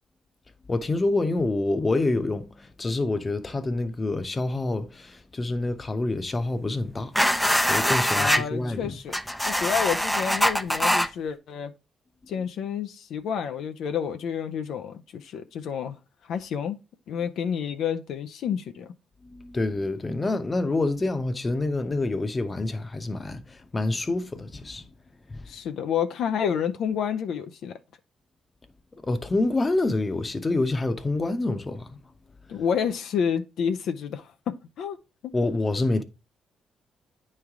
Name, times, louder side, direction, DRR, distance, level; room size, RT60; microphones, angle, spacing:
voice 1, 0.7-9.0 19.2-24.9 25.3-25.5 29.0-32.0 35.3-36.0, left 2 dB, 25° left, 0.8 m, -27 dB
sound 1, 7.1-8.4 9.1-11.1, equal, ahead, 0.5 m, -23 dB
voice 2, 8.2-11.7 12.3-16.8 17.1-18.9 25.5-27.8 32.5-35.0 35.2-35.3, left 7 dB, 75° left, 0.4 m, -29 dB
9.1 x 3.2 x 3.5 m
cardioid pair, 90°, 0 cm